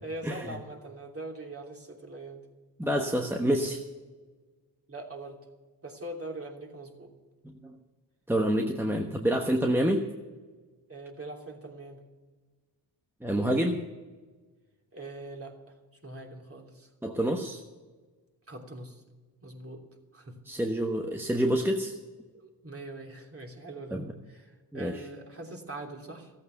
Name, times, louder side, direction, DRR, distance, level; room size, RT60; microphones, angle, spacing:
voice 1, 0.0-2.4 4.9-5.4 5.8-7.1 10.9-12.0 14.9-15.6 16.0-16.9 18.5-19.0 19.4-19.8 20.1-20.4 22.3-26.3, right 2 dB, 30° right, 1 dB, 3.1 m, -42 dB
voice 2, 2.8-3.8 7.4-7.7 8.3-10.1 13.2-13.9 17.0-17.6 20.5-21.9 23.9-24.1 24.7-24.9, equal, 5° right, 3 dB, 1.2 m, -27 dB
14.0 x 8.6 x 8.0 m, 1.3 s
supercardioid pair, 65°, 44 cm